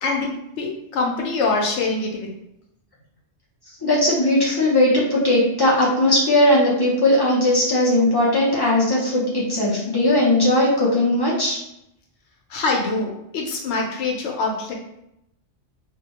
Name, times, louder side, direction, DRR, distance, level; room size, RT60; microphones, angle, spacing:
voice 1, 0.0-2.3 12.5-14.7, left 3 dB, 70° left, 0 dB, 0.9 m, -24 dB
voice 2, 3.8-11.6, left 1 dB, 40° left, -7 dB, 0.3 m, -18 dB
2.2 x 2.1 x 2.8 m, 0.81 s
omnidirectional pair, 1.3 m